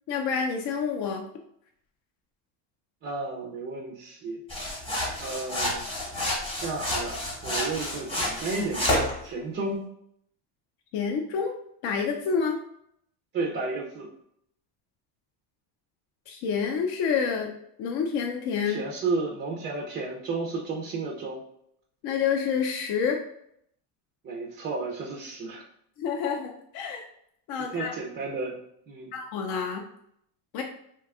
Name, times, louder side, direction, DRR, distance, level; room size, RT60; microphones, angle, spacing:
voice 1, 0.1-1.2 10.9-11.5 11.8-12.6 16.3-17.5 17.8-18.8 22.0-23.2 26.0-27.1 27.5-27.9 29.1-29.8 30.5-30.6, left 6 dB, 55° left, 2 dB, 0.5 m, -28 dB
voice 2, 3.0-4.4 5.2-5.9 6.6-8.9 9.2-9.9 13.3-14.1 18.6-21.4 24.2-25.7 27.6-28.6 28.9-29.1, right 3 dB, 25° right, -2 dB, 0.3 m, -32 dB
sound 1, 4.5-9.2, left 1 dB, 10° left, 0.9 m, -29 dB
2.7 x 2.2 x 3.5 m, 0.72 s
cardioid pair, 140°, 48 cm